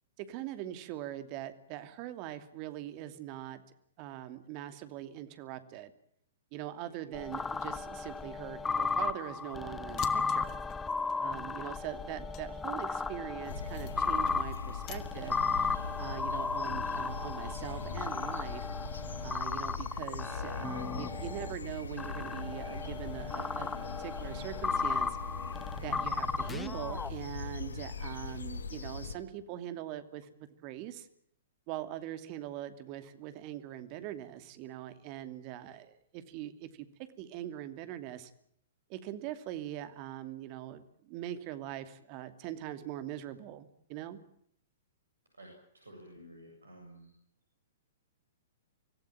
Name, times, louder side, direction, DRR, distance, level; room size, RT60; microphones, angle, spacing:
voice 1, 0.2-3.6 4.0-5.9 6.5-10.6 11.2-15.4 16.0-18.7 19.2-25.2 25.7-31.1 31.7-36.9 37.2-38.3 38.9-44.2, right 12 dB, 35° right, 10 dB, 2.7 m, -42 dB
sound 1, 7.1-21.5 22.0-27.1, left 4 dB, 10° left, 1.1 m, -35 dB
sound 2, 9.8-16.0, left 10 dB, 30° left, 2.0 m, -49 dB
sound 3, 13.5-29.2, left 4 dB, 70° left, 2.0 m, -41 dB
voice 2, 45.4-47.1, equal, 75° right, 1 dB, 7.7 m, -52 dB
25.5 x 17.0 x 9.1 m, 0.67 s
figure-of-eight pair, 110°, 0 cm